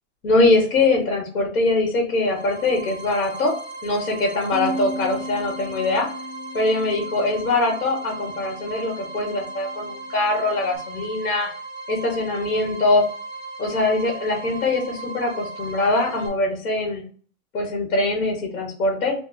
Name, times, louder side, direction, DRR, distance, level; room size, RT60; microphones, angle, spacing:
voice 1, 0.2-3.5 3.8-6.1 6.5-11.5 11.9-13.0 13.6-17.0 17.5-19.1, left 2 dB, 45° left, 1 dB, 1.3 m, -22 dB
sound 1, 2.1-16.3, right 3 dB, 10° right, 0.7 m, -37 dB
Bass guitar, 4.5-10.8, right 1 dB, 80° right, 0.6 m, -37 dB
5.4 x 2.1 x 2.6 m, 0.44 s
supercardioid pair, 170°, 42 cm